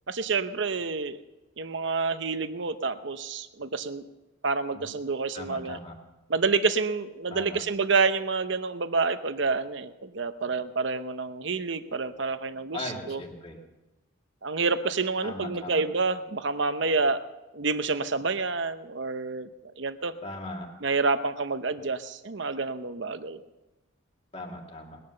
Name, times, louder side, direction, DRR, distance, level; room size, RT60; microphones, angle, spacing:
voice 1, 0.1-1.2 1.6-4.1 4.4-5.8 6.3-13.2 14.4-17.2 17.5-19.5 19.8-20.1 20.8-23.4, right 4 dB, 60° right, 11 dB, 0.8 m, -28 dB
voice 2, 5.3-5.9 7.3-7.6 12.7-13.6 15.2-15.8 20.2-20.7 24.3-25.0, left 2 dB, 30° left, 0 dB, 2.3 m, -38 dB
20.0 x 11.0 x 6.6 m, 1.0 s
head